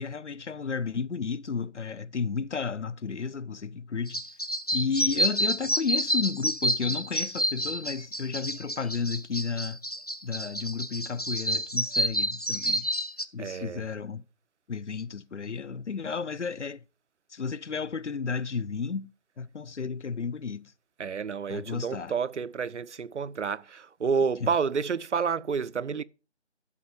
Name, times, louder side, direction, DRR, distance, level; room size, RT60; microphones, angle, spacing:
voice 1, 0.0-4.2 4.7-9.8 10.2-12.9 13.3-14.3 14.7-16.8 17.3-19.1 19.4-20.7 21.5-22.1 24.4-24.5, left 5 dB, 85° left, 0.7 m, -32 dB
sound 1, 4.1-13.2, equal, 35° left, 0.4 m, -29 dB
voice 2, 13.4-13.8 21.0-26.0, right 6 dB, 80° right, 0.6 m, -29 dB
12.0 x 5.2 x 4.9 m
figure-of-eight pair, 160°, 35 cm